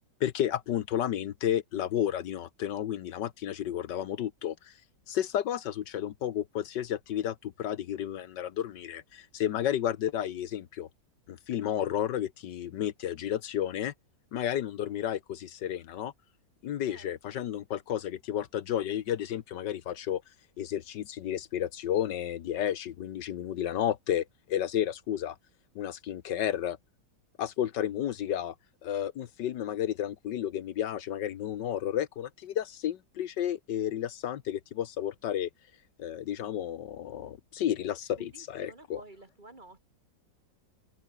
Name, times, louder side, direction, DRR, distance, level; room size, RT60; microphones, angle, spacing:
voice 1, 0.2-4.7 5.1-10.9 11.3-13.9 14.3-16.1 16.6-20.2 20.6-25.4 25.7-26.8 27.4-28.5 28.8-35.5 36.0-39.0, left 10 dB, 70° left, 1.5 m, -32 dB
voice 2, 16.9-17.4 38.2-39.9, right 2 dB, 25° right, 2.4 m, -52 dB
open air
omnidirectional pair, 2.0 m